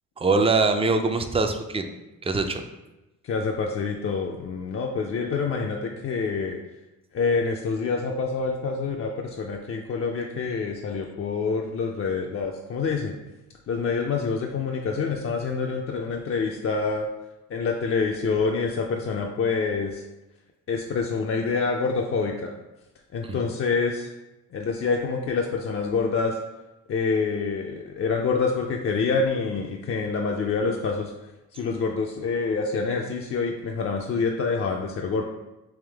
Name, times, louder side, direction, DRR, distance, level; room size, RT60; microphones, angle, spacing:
voice 1, 0.2-1.9 2.2-2.6 23.3-23.4, right 3 dB, 20° right, 6 dB, 0.4 m, -23 dB
voice 2, 3.2-6.6 7.1-13.1 13.7-17.1 17.5-20.0 20.7-22.5 23.1-24.1 24.5-26.4 26.9-31.1 31.6-35.2, left 4 dB, 40° left, 1 dB, 0.4 m, -26 dB
3.5 x 3.0 x 3.4 m, 1.0 s
cardioid pair, 80°, 33 cm